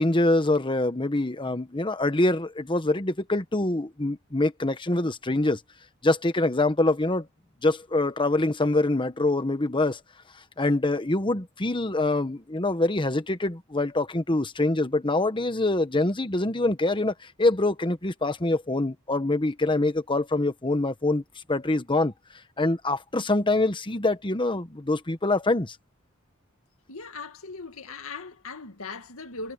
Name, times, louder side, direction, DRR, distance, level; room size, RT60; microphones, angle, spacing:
voice 1, 0.0-5.6 6.0-7.3 7.6-10.0 10.6-21.2 21.5-22.1 22.6-25.8, left 2 dB, 25° left, 1.2 m, -25 dB
voice 2, 26.9-29.5, left 3 dB, 85° left, 2.1 m, -39 dB
head